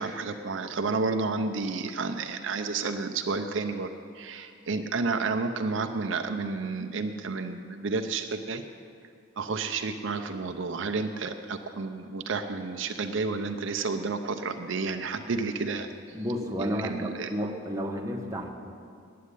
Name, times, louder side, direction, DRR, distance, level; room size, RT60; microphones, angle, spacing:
voice 1, 0.0-8.6 9.4-15.9 16.6-17.3, right 4 dB, 65° right, 6 dB, 0.5 m, -31 dB
voice 2, 16.1-18.5, equal, 15° right, 0 dB, 1.0 m, -31 dB
9.4 x 8.4 x 9.7 m, 2.3 s
head